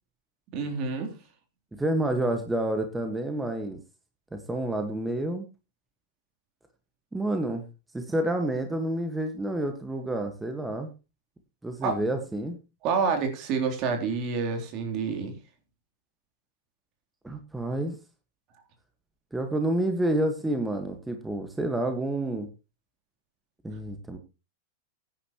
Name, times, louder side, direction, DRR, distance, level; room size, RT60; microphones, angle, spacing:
voice 1, 0.5-1.1 11.8-12.0 12.8-15.3, right 5 dB, 45° right, 4 dB, 3.5 m, -28 dB
voice 2, 1.7-3.8 4.3-5.4 7.1-7.7 7.9-10.9 11.6-12.6 17.2-18.0 19.3-22.5 23.6-24.2, right 1 dB, 10° right, 6 dB, 1.6 m, -29 dB
15.5 x 10.0 x 3.0 m, 0.28 s
hypercardioid pair, 120°, 0 cm